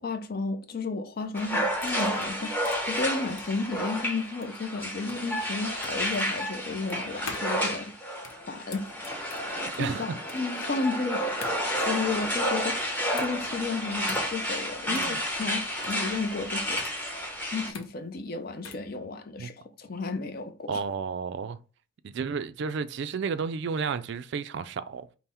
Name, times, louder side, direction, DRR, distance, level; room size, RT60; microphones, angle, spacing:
voice 1, 0.0-7.9 8.5-8.9 9.8-11.3 11.7-16.8 17.5-20.8, left 3 dB, 45° left, 0.5 m, -33 dB
sound 1, 1.1-18.9, left 4 dB, 75° left, 0.8 m, -47 dB
sound 2, 1.3-17.7, equal, 10° left, 0.8 m, -31 dB
voice 2, 14.9-15.2 19.4-19.5 20.7-21.6 22.0-25.1, right 5 dB, 55° right, 0.3 m, -32 dB
5.5 x 2.1 x 4.3 m
head